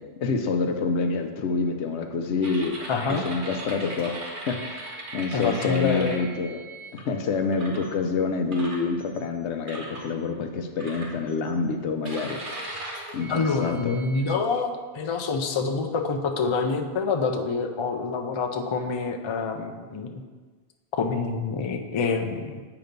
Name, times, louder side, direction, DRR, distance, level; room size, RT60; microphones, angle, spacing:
voice 1, 0.0-2.8 3.1-4.2 4.5-6.6 6.9-12.8 13.1-14.0, left 4 dB, 85° left, 6 dB, 0.9 m, -27 dB
sound 1, 2.4-7.0 7.5-7.9 8.5-9.2 9.7-10.1 10.8-11.5 12.0-14.4, right 1 dB, 50° right, 1.1 m, -38 dB
voice 2, 2.9-3.2 5.3-6.2 13.3-20.1 20.9-22.6, left 4 dB, 45° left, 4 dB, 0.3 m, -27 dB
7.9 x 2.9 x 5.1 m, 1.4 s
omnidirectional pair, 1.2 m